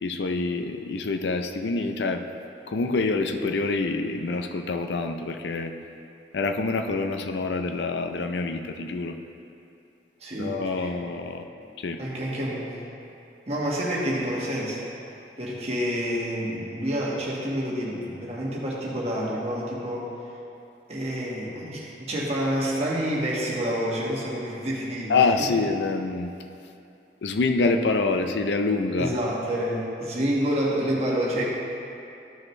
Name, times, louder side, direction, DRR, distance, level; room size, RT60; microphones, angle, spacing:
voice 1, 0.0-2.2 2.7-5.7 6.3-9.2 10.4-11.4 11.8-12.0 25.1-26.3 27.2-29.1, left 3 dB, 85° left, 6 dB, 0.5 m, -26 dB
voice 2, 10.2-10.9 12.0-12.8 13.5-14.8 15.4-20.1 20.9-25.6 29.0-31.4, equal, 35° right, -5 dB, 1.4 m, -28 dB
13.5 x 5.1 x 3.2 m, 2.7 s
head